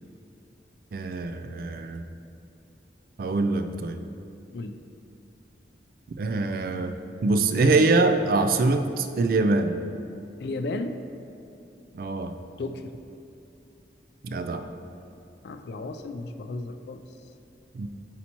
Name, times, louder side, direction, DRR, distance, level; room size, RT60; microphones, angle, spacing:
voice 1, 0.9-2.0 3.2-4.0 6.2-6.9 7.2-9.7 11.9-12.3 14.2-14.7 17.7-17.9, right 3 dB, 50° right, 8 dB, 0.3 m, -24 dB
voice 2, 10.4-11.0 12.6-12.9 15.4-17.1, left 2 dB, 65° left, 8 dB, 0.3 m, -34 dB
8.6 x 4.2 x 2.9 m, 2.8 s
head